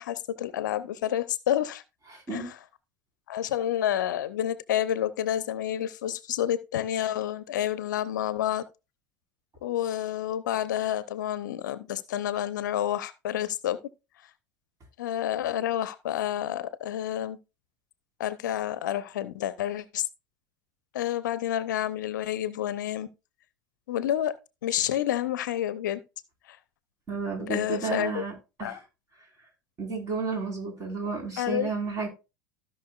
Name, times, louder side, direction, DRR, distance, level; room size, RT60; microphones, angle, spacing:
voice 1, 0.0-1.8 2.3-2.4 3.3-8.6 9.6-13.8 15.0-17.4 18.2-20.1 20.9-23.1 23.9-24.3 24.6-26.0 26.5-26.6 27.5-28.2 28.6-28.8 31.4-31.7, left 11 dB, 65° left, 0.7 m, -29 dB
voice 2, 2.1-2.5 27.1-28.3 28.6-28.8 29.8-32.1, right 4 dB, 30° right, 4.8 m, -32 dB
16.0 x 5.7 x 2.5 m
figure-of-eight pair, 75°, 11 cm